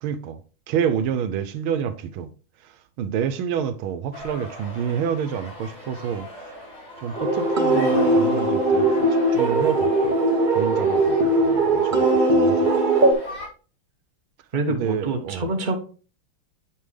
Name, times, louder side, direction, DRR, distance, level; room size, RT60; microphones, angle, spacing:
voice 1, 0.0-0.4 0.7-2.3 3.0-6.3 7.0-9.0 9.3-10.1 10.5-12.7 14.8-15.5, right 8 dB, 90° right, 1.5 m, -28 dB
sound 1, 4.1-13.5, left 1 dB, 30° left, 3.5 m, -37 dB
sound 2, 7.1-13.1, right 2 dB, 45° right, 0.6 m, -19 dB
voice 2, 14.5-15.8, right 2 dB, 30° right, 1.0 m, -26 dB
8.2 x 5.5 x 3.3 m
omnidirectional pair, 2.2 m